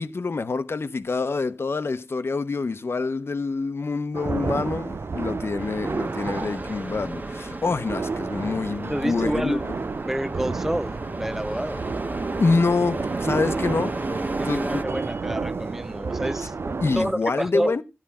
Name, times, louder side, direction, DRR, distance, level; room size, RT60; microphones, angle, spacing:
voice 1, 0.0-9.6 12.4-13.9 14.4-14.8 16.8-17.8, left 4 dB, 65° left, 0.8 m, -26 dB
sound 1, 4.1-17.1, right 4 dB, 65° right, 0.6 m, -31 dB
sound 2, 5.6-14.8, right 2 dB, 40° right, 1.4 m, -33 dB
voice 2, 8.9-9.6 10.0-11.8 14.4-17.8, right 1 dB, 5° right, 0.5 m, -29 dB
11.5 x 11.0 x 4.2 m
cardioid pair, 40°, 4 cm